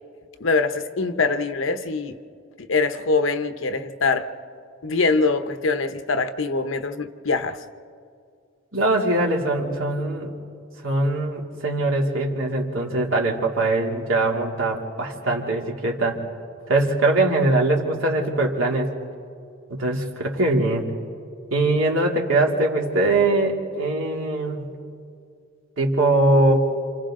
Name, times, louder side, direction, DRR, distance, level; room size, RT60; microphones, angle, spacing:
voice 1, 0.4-2.1 2.7-4.3 4.8-7.6, left 3 dB, 80° left, 9 dB, 1.0 m, -23 dB
voice 2, 8.7-10.3 10.8-16.2 16.7-18.9 19.7-20.9 21.5-24.8 25.8-26.7, right 2 dB, 85° right, -1 dB, 2.9 m, -22 dB
29.0 x 27.5 x 3.8 m, 2.3 s
head